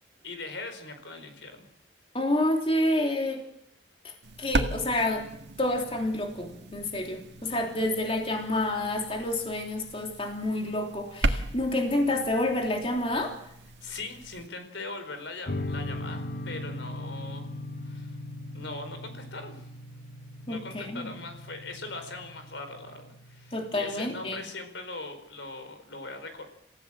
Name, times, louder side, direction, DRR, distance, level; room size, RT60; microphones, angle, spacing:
voice 1, 0.2-1.7 13.8-17.5 17.8-18.2 18.5-19.7 20.5-26.4, left 3 dB, 85° left, 8 dB, 4.6 m, -40 dB
voice 2, 2.1-3.4 4.0-4.1 4.4-5.3 5.6-13.4 20.5-21.1 23.5-24.4, left 1 dB, 30° left, 2 dB, 3.1 m, -28 dB
sound 1, 4.2-14.5, right 2 dB, 70° right, 1.8 m, -36 dB
sound 2, 15.5-24.4, left 1 dB, 50° left, 1.2 m, -39 dB
27.5 x 16.0 x 7.6 m, 0.77 s
head